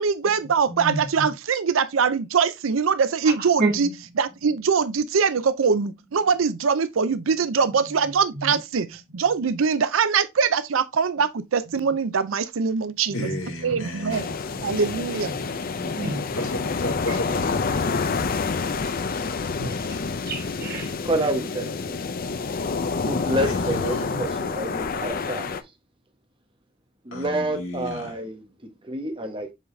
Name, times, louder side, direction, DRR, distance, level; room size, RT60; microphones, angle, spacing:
voice 1, 0.0-3.9 4.2-8.9 9.1-13.1 13.6-14.3 14.6-15.4, right 5 dB, 80° right, 0.5 m, -22 dB
voice 2, 0.7-1.3 3.4-4.1 7.8-8.6 11.8-11.9 13.1-13.8 14.5-14.7 15.2-15.4 16.0-16.4 17.1-17.2 18.7-18.8 19.6-20.0 20.3-20.9 23.7-23.8 24.1-24.3, right 2 dB, 50° right, 1.6 m, -32 dB
voice 3, 13.1-14.3 15.5-16.0 16.3-17.6 23.4-24.1 27.1-28.2, left 1 dB, 85° left, 3.2 m, -33 dB
sound 1, 14.1-25.6, left 4 dB, 45° left, 0.6 m, -28 dB
voice 4, 21.0-22.0 23.0-25.6 27.0-28.4 28.8-29.5, right 1 dB, 25° right, 1.3 m, -28 dB
7.3 x 4.0 x 3.2 m
head